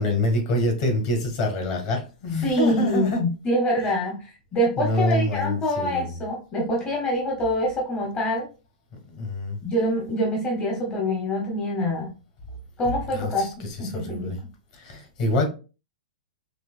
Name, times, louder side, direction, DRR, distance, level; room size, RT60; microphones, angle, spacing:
voice 1, 0.0-3.2 4.8-6.2 9.1-9.6 13.1-14.4 14.7-15.4, left 1 dB, 45° left, 2 dB, 1.5 m, -26 dB
voice 2, 2.4-8.5 9.6-12.1 12.8-14.3, equal, 20° left, -1 dB, 0.9 m, -25 dB
4.4 x 3.0 x 2.4 m, 0.33 s
hypercardioid pair, 145°, 5 cm